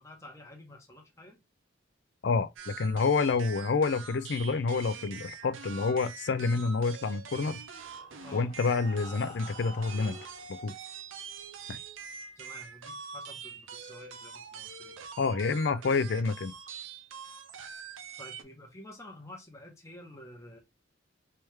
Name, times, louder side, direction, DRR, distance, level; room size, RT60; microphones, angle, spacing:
voice 1, 0.0-1.4 8.2-8.5 12.4-15.0 18.2-20.6, left 1 dB, 15° left, 1.0 m, -50 dB
voice 2, 2.2-7.6 8.3-10.2 10.5-10.7 11.7-11.8 15.2-16.5, left 4 dB, 60° left, 0.4 m, -28 dB
sound 1, 2.6-18.4, right 6 dB, 85° right, 0.6 m, -45 dB
Breathing, 7.7-10.6 11.4-11.5 11.9-12.0 12.4-12.5, left 3 dB, 40° left, 1.4 m, -50 dB
3.4 x 3.1 x 3.1 m
head